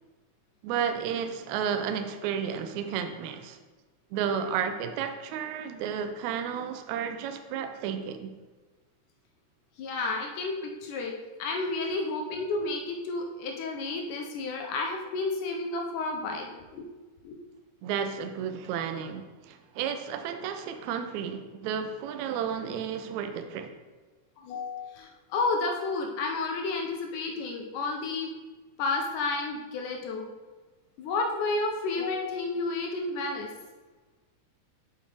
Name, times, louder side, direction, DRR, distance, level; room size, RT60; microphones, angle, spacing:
voice 1, 0.6-3.6 4.1-8.3 17.8-23.8, right 7 dB, 90° right, 7 dB, 1.6 m, -32 dB
voice 2, 9.8-11.1 11.4-16.8 17.2-17.4 24.4-28.3 28.8-30.3 31.0-33.5, left 3 dB, 75° left, 2 dB, 2.0 m, -31 dB
6.9 x 5.3 x 3.3 m, 1.3 s
omnidirectional pair, 3.8 m